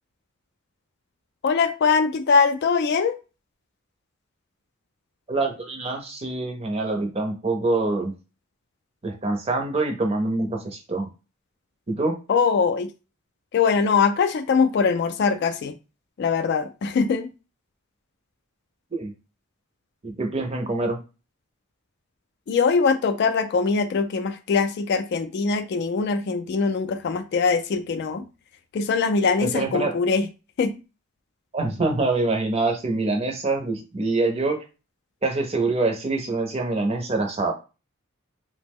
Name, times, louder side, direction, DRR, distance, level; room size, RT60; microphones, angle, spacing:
voice 1, 1.4-3.2 12.3-12.9 13.5-15.7 16.2-17.3 22.5-28.3 28.7-30.2 30.6-30.8, left 5 dB, 50° left, 0.3 m, -22 dB
voice 2, 5.3-8.1 9.0-11.1 11.9-12.2 18.9-19.1 20.0-21.0 29.4-29.9 31.5-34.6 35.2-37.5, right 3 dB, 30° right, 0.5 m, -25 dB
2.9 x 2.1 x 3.5 m
head